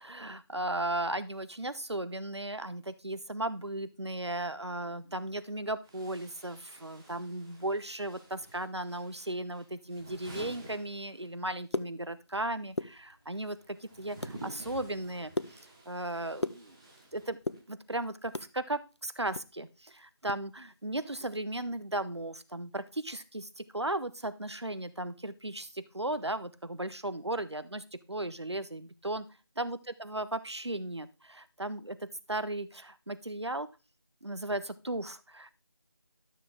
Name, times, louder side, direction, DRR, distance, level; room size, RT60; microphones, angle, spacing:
voice 1, 0.0-15.3 15.9-16.8 17.1-17.4 17.7-29.3 29.6-33.7 34.2-35.5, right 1 dB, 90° right, 13 dB, 1.1 m, -36 dB
sound 1, 5.8-11.6 11.9-17.7, right 2 dB, 10° right, 1.1 m, -51 dB
sound 2, 11.5-12.4 12.7-13.5 13.9-14.4 14.8-17.1 17.3-18.5 18.9-20.4 20.7-20.8 21.2-21.4 21.8-22.0, left 2 dB, 85° left, 0.7 m, -38 dB
12.5 x 6.8 x 3.6 m, 0.30 s
figure-of-eight pair, 165°, 14 cm